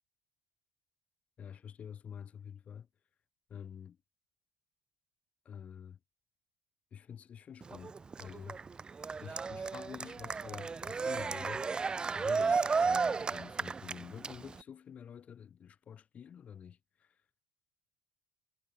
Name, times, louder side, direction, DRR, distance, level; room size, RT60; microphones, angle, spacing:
voice 1, 1.4-2.9 3.5-4.0 5.4-6.0 6.9-8.6 9.2-11.7 12.1-17.1, left 8 dB, 45° left, 1.1 m, -48 dB
Cheering, 7.6-14.6, right 4 dB, 25° right, 0.6 m, -33 dB
hypercardioid pair, 55°, 3 cm